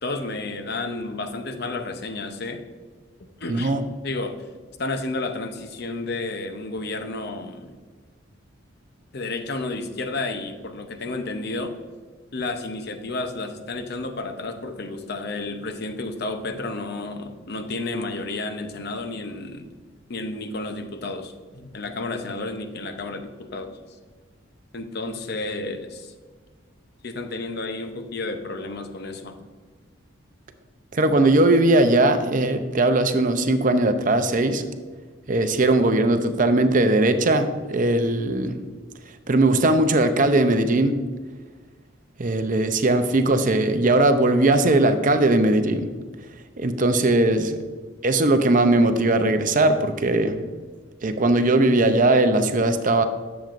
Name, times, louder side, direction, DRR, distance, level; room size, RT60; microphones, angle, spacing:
voice 1, 0.0-2.6 3.4-3.7 4.0-4.4 4.8-7.8 9.1-11.8 12.3-19.7 20.1-23.8 24.7-26.1 27.0-29.4, left 2 dB, 50° left, 7 dB, 0.7 m, -31 dB
voice 2, 3.5-3.8 30.9-34.6 35.3-38.6 39.3-41.0 42.2-45.9 46.6-47.6 48.0-50.4 51.0-53.0, right 2 dB, 40° right, 8 dB, 0.6 m, -19 dB
10.5 x 7.1 x 2.5 m, 1.4 s
head